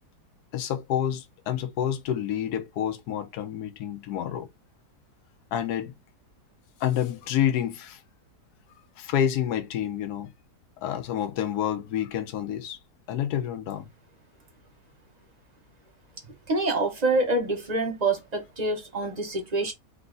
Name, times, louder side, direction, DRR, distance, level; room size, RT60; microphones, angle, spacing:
voice 1, 0.5-4.5 5.5-5.9 6.8-8.0 9.0-10.3 10.8-12.8 13.1-13.9, left 10 dB, 70° left, 1.2 m, -28 dB
voice 2, 16.5-19.7, right 2 dB, 25° right, 1.2 m, -26 dB
3.6 x 2.9 x 3.8 m
omnidirectional pair, 1.8 m